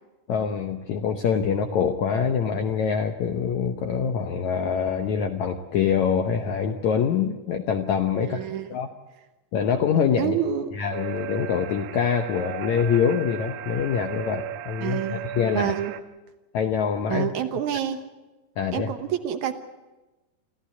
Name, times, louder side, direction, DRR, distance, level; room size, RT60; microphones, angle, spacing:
voice 1, 0.3-8.9 9.5-10.3 10.7-15.7 16.5-17.3 18.6-18.9, left 7 dB, 75° left, 6 dB, 1.7 m, -25 dB
voice 2, 8.2-8.7 10.2-10.7 14.8-15.2 15.5-15.9 17.1-18.0 18.7-19.5, right 9 dB, 65° right, 8 dB, 1.9 m, -27 dB
sound 1, 10.9-16.0, right 14 dB, 90° right, 3.0 m, -36 dB
27.0 x 15.0 x 8.3 m, 1.1 s
omnidirectional pair, 4.6 m